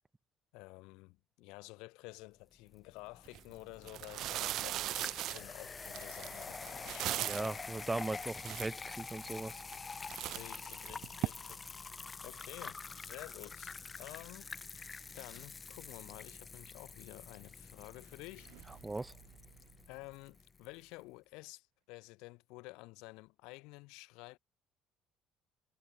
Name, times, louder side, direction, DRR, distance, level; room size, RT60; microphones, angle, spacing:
voice 1, 0.5-7.3 10.3-11.6 12.0-14.5 14.7-18.8 19.9-24.4, left 24 dB, 85° left, 3.4 m, -51 dB
sound 1, 2.7-20.7, left 4 dB, 20° left, 5.9 m, -47 dB
sound 2, 3.3-3.4 3.8-7.6 8.1-8.2 8.4-9.1 9.6-9.8 10.1-11.3, right 14 dB, 60° right, 0.8 m, -38 dB
voice 2, 7.1-9.6 18.8-19.1, right 2 dB, 10° right, 1.1 m, -39 dB
sound 3, 17.5-21.1, right 26 dB, 85° right, 7.1 m, -62 dB
cardioid pair, 130°, 0 cm